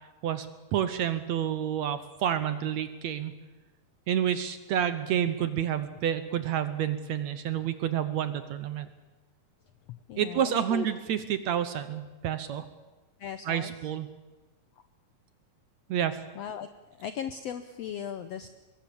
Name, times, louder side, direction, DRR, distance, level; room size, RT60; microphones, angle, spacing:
voice 1, 0.2-3.3 4.1-8.9 10.2-12.7 13.5-14.1 15.9-16.2, right 10 dB, 70° right, 11 dB, 1.9 m, -29 dB
voice 2, 9.9-10.9 13.2-13.7 16.3-16.7 17.0-18.5, left 9 dB, 75° left, 10 dB, 1.5 m, -37 dB
24.5 x 22.0 x 7.0 m, 1.2 s
omnidirectional pair, 3.9 m